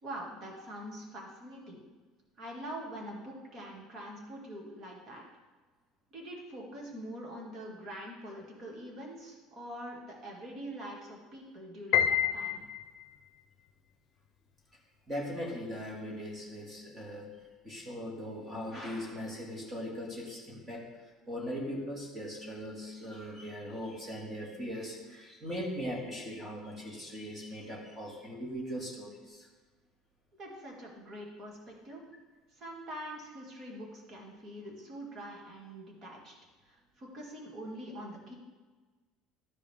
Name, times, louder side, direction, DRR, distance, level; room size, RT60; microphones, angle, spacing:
voice 1, 0.0-1.8 2.4-5.2 6.1-12.6 30.4-32.0 32.6-36.3 36.7-38.3, right 1 dB, 35° right, -1 dB, 2.2 m, -44 dB
Piano, 11.9-13.2, left 9 dB, 50° left, 0.7 m, -28 dB
voice 2, 15.1-17.3 17.6-20.9 21.3-29.5, equal, 15° right, -2 dB, 2.1 m, -39 dB
13.0 x 5.0 x 3.6 m, 1.3 s
cardioid pair, 140°, 0 cm